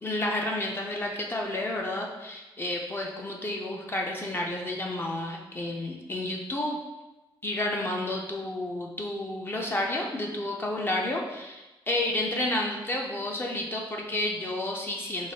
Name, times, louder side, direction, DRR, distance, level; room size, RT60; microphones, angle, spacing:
voice 1, 0.0-6.8 7.4-15.3, left 1 dB, 25° left, 0 dB, 0.4 m, -31 dB
4.6 x 2.4 x 2.7 m, 1.0 s
wide cardioid pair, 125°, 9 cm